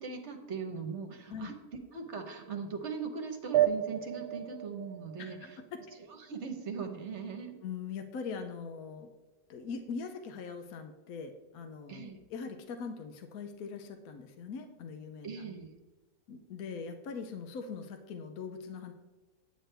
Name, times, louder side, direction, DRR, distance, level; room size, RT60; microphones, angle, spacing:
voice 1, 0.0-1.5 1.9-5.6 6.0-7.6 11.9-12.2 15.2-15.7, right 5 dB, 50° right, 5 dB, 1.3 m, -40 dB
sound 1, 3.5-6.5, right 12 dB, 80° right, 1.1 m, -32 dB
voice 2, 5.2-5.8 7.6-9.1 9.5-15.3 16.3-18.9, left 5 dB, 70° left, 6 dB, 1.2 m, -41 dB
9.3 x 8.9 x 3.4 m, 1.2 s
omnidirectional pair, 1.7 m